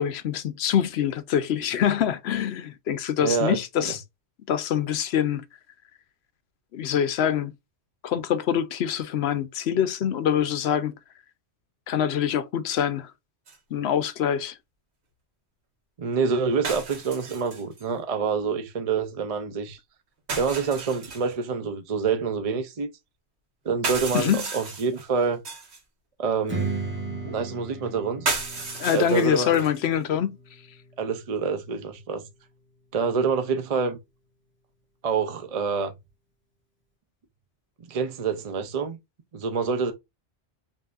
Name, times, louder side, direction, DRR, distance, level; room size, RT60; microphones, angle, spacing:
voice 1, 0.0-4.0 4.5-5.4 6.7-7.5 8.0-11.0 11.9-13.1 13.7-14.6 24.1-24.4 28.8-30.4, left 9 dB, 65° left, 0.8 m, -25 dB
voice 2, 3.2-3.6 16.0-19.8 20.3-22.9 23.6-25.4 26.2-26.8 27.2-28.3 28.9-29.5 31.0-32.3 32.9-34.0 35.0-35.9 37.8-39.0 39.3-39.9, right 5 dB, 45° right, 0.5 m, -26 dB
sound 1, 13.5-13.6 16.6-17.8 20.3-21.3 23.7-25.8 28.3-29.9, right 4 dB, 65° right, 1.5 m, -33 dB
Strum, 26.5-31.7, right 3 dB, 10° right, 0.9 m, -36 dB
5.5 x 2.6 x 2.4 m
omnidirectional pair, 1.2 m